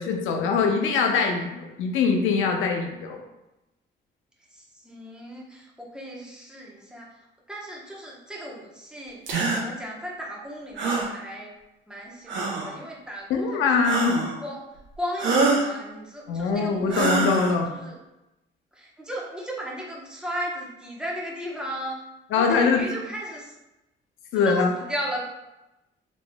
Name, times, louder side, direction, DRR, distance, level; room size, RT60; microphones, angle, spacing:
voice 1, 0.0-3.2 13.3-14.2 16.3-17.7 22.3-22.8 24.3-24.7, left 5 dB, 85° left, 3 dB, 0.6 m, -23 dB
voice 2, 4.5-7.1 7.5-9.2 9.5-11.5 11.9-13.9 14.4-14.7 15.0-18.0 18.8-22.0 22.3-23.5 24.3-25.2, equal, 5° right, -4 dB, 1.0 m, -35 dB
sound 1, 9.3-9.6 10.8-11.1 12.3-12.7 13.8-14.4 15.2-15.7 16.9-17.6, right 3 dB, 70° right, 0.9 m, -24 dB
4.1 x 3.2 x 2.3 m, 0.96 s
cardioid pair, 90°, 20 cm